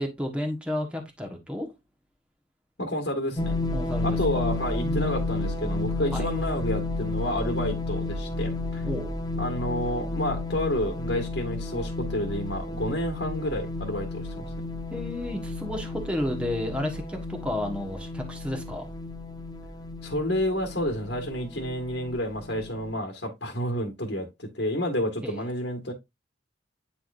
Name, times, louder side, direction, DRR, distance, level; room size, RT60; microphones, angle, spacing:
voice 1, 0.0-1.7 3.7-4.4 4.8-5.1 6.1-6.3 8.8-9.1 14.9-18.9 25.2-25.4, left 1 dB, 5° right, 1.3 m, -32 dB
voice 2, 2.8-3.5 4.0-8.9 9.4-14.5 20.0-25.9, left 1 dB, 65° left, 1.7 m, -30 dB
sound 1, 3.4-22.9, left 2 dB, 20° left, 0.9 m, -32 dB
9.6 x 4.5 x 2.6 m
head